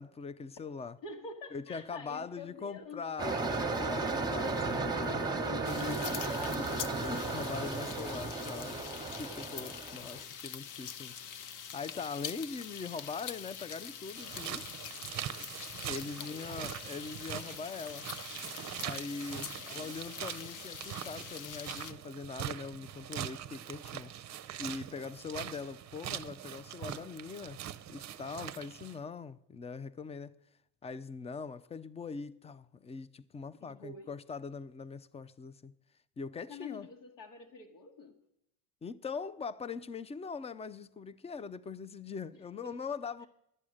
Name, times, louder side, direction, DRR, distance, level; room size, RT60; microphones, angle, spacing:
voice 1, 0.0-1.0 1.5-5.3 6.6-6.7 7.0-8.9 9.2-11.1 11.7-14.7 15.7-18.1 18.8-27.6 27.9-30.4 30.8-35.7 36.2-36.9 38.8-43.3, left 5 dB, 15° left, 0.3 m, -42 dB
voice 2, 1.0-3.1 5.0-6.6 16.2-16.7 19.6-19.9 33.6-34.1 36.5-38.2 42.6-42.7 43.2-43.3, left 4 dB, 70° left, 1.6 m, -46 dB
sound 1, 3.2-10.2, right 3 dB, 10° right, 1.0 m, -34 dB
sound 2, 5.6-21.9, left 8 dB, 40° left, 0.8 m, -44 dB
sound 3, 14.2-29.0, right 11 dB, 35° right, 0.6 m, -42 dB
12.0 x 8.5 x 6.3 m
supercardioid pair, 90°, 47 cm